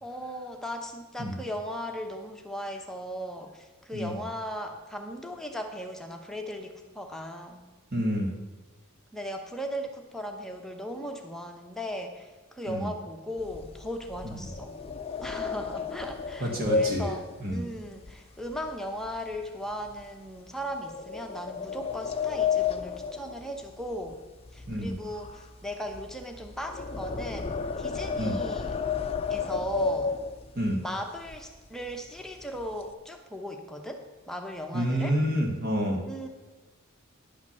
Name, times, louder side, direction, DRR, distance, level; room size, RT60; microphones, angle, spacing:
voice 1, 0.0-7.7 9.1-14.8 15.2-24.2 24.5-28.7 29.3-30.2 30.8-35.2 36.0-36.3, equal, ahead, 3 dB, 0.9 m, -37 dB
voice 2, 7.9-8.3 12.7-12.9 16.4-17.1 17.4-17.6 24.7-24.9 28.2-28.4 30.5-30.8 34.7-36.0, equal, 50° right, 0 dB, 1.6 m, -28 dB
sound 1, 13.4-18.7 19.0-19.4 19.9-20.0 20.8-24.2 24.4-30.7 31.3-31.4 31.7-31.9 32.3-32.9, left 5 dB, 30° left, 0.5 m, -32 dB
10.5 x 5.8 x 6.9 m, 1.3 s
head